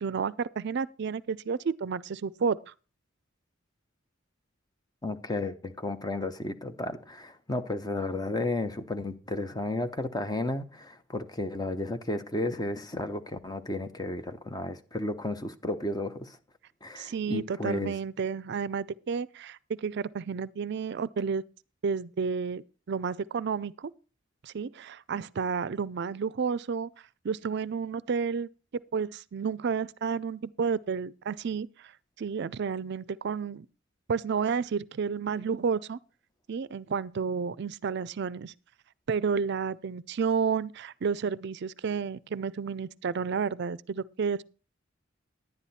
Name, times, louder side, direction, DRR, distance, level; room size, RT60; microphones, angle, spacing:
voice 1, 0.0-2.7 17.0-21.4 21.8-23.9 24.4-26.9 27.2-31.9 32.2-33.7 34.1-36.0 36.5-38.5 39.1-44.4, right 6 dB, 60° right, 0.4 m, -31 dB
voice 2, 5.0-16.4 16.8-17.9, left 2 dB, 20° left, 0.9 m, -33 dB
11.0 x 9.9 x 4.2 m
head